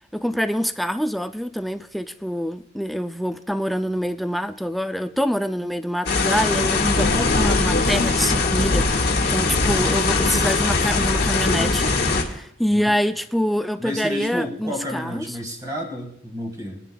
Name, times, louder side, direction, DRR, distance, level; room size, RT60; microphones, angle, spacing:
voice 1, 0.1-15.4, equal, ahead, 0.3 m, -25 dB
sound 1, 6.1-12.2, left 3 dB, 60° left, 1.4 m, -21 dB
voice 2, 9.4-10.0 12.7-12.9 13.8-16.8, equal, 20° right, 1.8 m, -31 dB
21.5 x 10.0 x 2.3 m
head